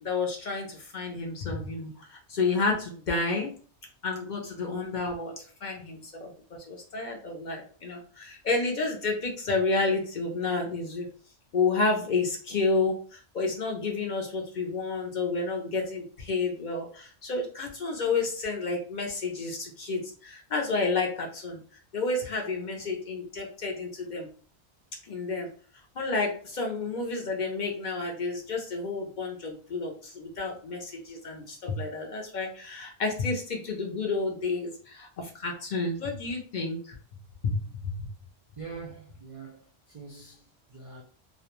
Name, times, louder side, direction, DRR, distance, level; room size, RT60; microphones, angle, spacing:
voice 1, 0.0-3.5 4.0-11.1 11.5-21.6 21.9-24.3 25.0-25.5 26.0-37.0 37.4-38.1, left 3 dB, 55° left, 0.6 m, -30 dB
voice 2, 38.6-41.0, right 5 dB, 60° right, 0.3 m, -44 dB
2.4 x 2.2 x 2.9 m
omnidirectional pair, 1.1 m